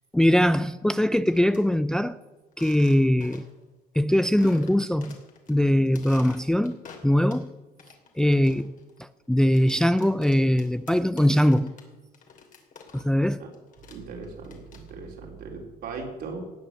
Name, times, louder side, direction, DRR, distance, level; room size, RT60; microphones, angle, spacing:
voice 1, 0.1-2.2 2.6-3.4 3.9-5.2 5.5-7.5 8.2-8.7 9.0-11.7 12.9-13.4, equal, 5° left, 0.4 m, -22 dB
sound 1, 0.9-1.6 2.5-3.6 3.9-4.0 4.4-5.5 5.9-7.5 7.8-13.3 13.5-15.1, left 5 dB, 50° left, 2.9 m, -49 dB
voice 2, 13.8-16.4, right 4 dB, 70° right, 4.1 m, -38 dB
19.0 x 7.5 x 7.7 m
cardioid pair, 110°, 17 cm